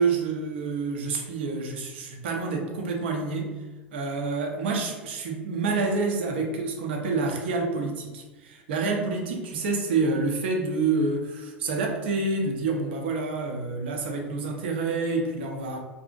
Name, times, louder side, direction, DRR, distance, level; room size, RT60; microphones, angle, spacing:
voice 1, 0.0-3.5 3.9-15.8, right 3 dB, 65° right, 2 dB, 0.5 m, -28 dB
2.7 x 2.6 x 2.4 m, 1.2 s
figure-of-eight pair, 80°, 6 cm